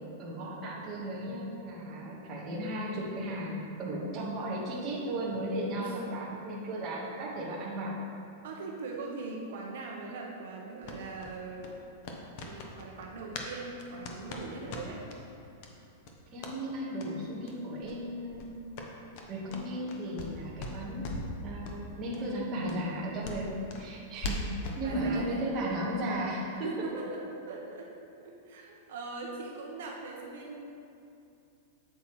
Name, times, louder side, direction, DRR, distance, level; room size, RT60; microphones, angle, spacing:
voice 1, 0.2-7.9 14.6-14.7 16.3-18.7 19.3-21.1 21.4-24.4 24.8-26.7, right 1 dB, 20° right, -5 dB, 1.3 m, -35 dB
voice 2, 8.4-11.7 12.4-15.1 24.8-25.4 26.6-27.2 27.5-27.9 28.2-30.7, right 3 dB, 60° right, -1 dB, 0.9 m, -41 dB
sound 1, 10.8-13.5 13.8-15.2 15.6-15.7 16.0-16.6 16.9-17.1 17.4-17.5 17.8-18.0 18.3-20.3 20.6-21.3 21.6-21.8 22.1-22.2 22.6-24.8, left 2 dB, 35° left, 0.7 m, -40 dB
8.2 x 7.6 x 3.1 m, 2.7 s
supercardioid pair, 180°, 0 cm